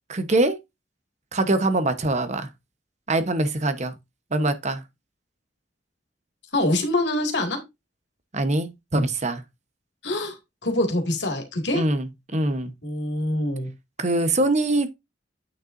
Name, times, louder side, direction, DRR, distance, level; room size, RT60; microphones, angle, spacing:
voice 1, 0.1-0.6 1.3-2.5 3.1-3.9 4.3-4.8 8.3-9.4 11.7-12.7 14.0-14.9, right 2 dB, 40° right, 1.0 m, -23 dB
voice 2, 6.5-7.6 10.0-10.4 10.6-11.8 12.8-13.7, left 1 dB, 70° left, 2.4 m, -24 dB
8.7 x 6.6 x 2.6 m
head